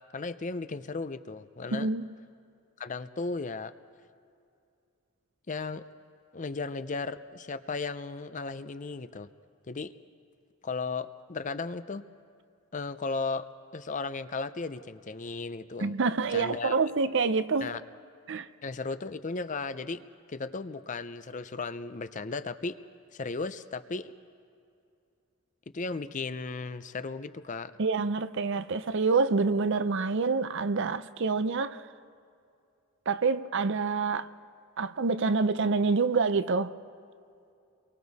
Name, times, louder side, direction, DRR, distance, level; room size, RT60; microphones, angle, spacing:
voice 1, 0.1-1.9 2.8-3.7 5.5-5.8 6.3-9.3 9.7-9.9 10.6-12.0 12.7-13.5 13.7-15.9 16.3-16.8 17.6-17.8 18.6-22.8 23.1-24.1 25.7-27.7, left 4 dB, 35° left, 0.5 m, -35 dB
voice 2, 1.7-2.1 15.8-17.7 18.3-18.5 27.8-31.8 33.1-34.3 34.8-36.7, right 4 dB, 60° right, 0.6 m, -27 dB
30.0 x 23.5 x 4.1 m
head